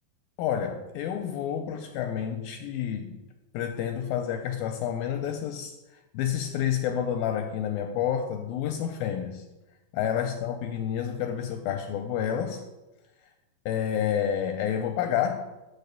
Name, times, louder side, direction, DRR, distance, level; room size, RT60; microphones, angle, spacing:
voice 1, 0.4-3.1 3.5-5.7 6.1-9.4 9.9-12.6 13.7-15.5, left 9 dB, 80° left, 5 dB, 2.1 m, -29 dB
6.6 x 5.7 x 6.7 m, 1.0 s
omnidirectional pair, 4.6 m